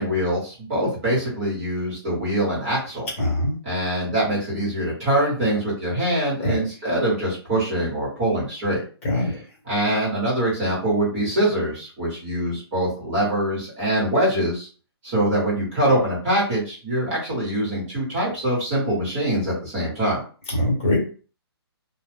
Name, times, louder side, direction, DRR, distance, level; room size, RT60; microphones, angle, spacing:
voice 1, 0.0-3.1 3.6-8.8 9.1-9.4 9.6-14.7 15.0-20.2, right 1 dB, 20° right, -7 dB, 1.3 m, -24 dB
voice 2, 3.2-3.6 6.4-6.6 9.0-9.4 20.5-21.0, left 1 dB, 30° left, -1 dB, 1.3 m, -22 dB
2.4 x 2.3 x 3.4 m, 0.38 s
hypercardioid pair, 175°, 14 cm